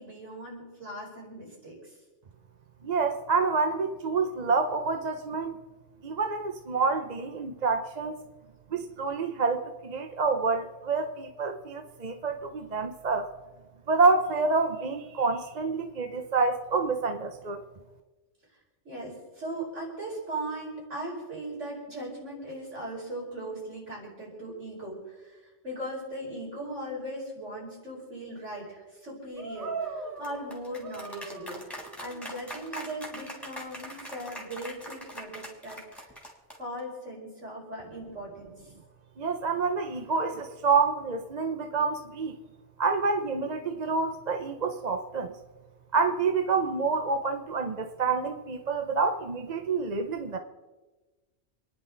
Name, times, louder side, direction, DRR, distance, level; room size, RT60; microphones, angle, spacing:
voice 1, 0.0-1.9 18.8-31.6 32.0-36.1 36.6-38.7, right 1 dB, 90° right, -3 dB, 5.8 m, -39 dB
voice 2, 2.8-5.6 6.0-8.2 8.7-13.3 13.9-17.6 39.2-42.4 42.8-45.3 45.9-50.4, right 4 dB, 40° right, 6 dB, 0.8 m, -27 dB
sound 1, 29.4-36.8, right 2 dB, ahead, 2.8 m, -40 dB
28.0 x 10.5 x 3.9 m, 1.2 s
omnidirectional pair, 1.2 m